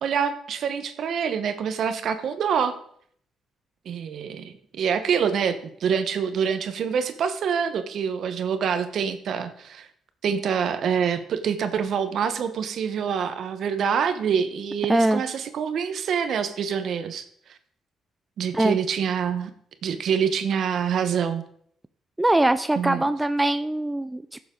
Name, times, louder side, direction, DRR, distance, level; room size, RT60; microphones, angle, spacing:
voice 1, 0.0-2.8 3.8-9.9 10.2-17.2 18.4-19.5 19.8-21.4 22.8-23.1, right 7 dB, 65° right, 10 dB, 1.1 m, -26 dB
voice 2, 14.9-15.2 18.5-18.8 22.2-24.5, right 1 dB, 10° right, 12 dB, 0.5 m, -22 dB
15.5 x 7.1 x 3.9 m, 0.63 s
cardioid pair, 90°, 0 cm